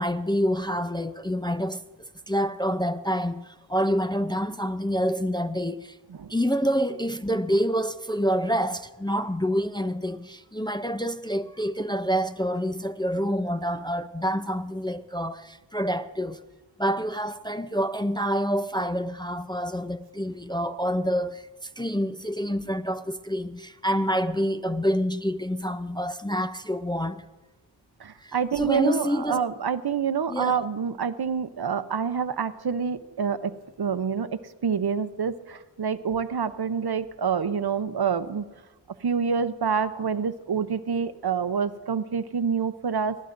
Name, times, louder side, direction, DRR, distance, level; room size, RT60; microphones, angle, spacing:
voice 1, 0.0-6.0 6.3-16.4 16.8-27.2 28.2-29.4 30.3-30.5, equal, 10° left, 0.5 m, -27 dB
voice 2, 28.0-38.4 39.0-43.3, right 6 dB, 60° right, 0.7 m, -27 dB
21.5 x 15.5 x 2.6 m
wide cardioid pair, 55°, 44 cm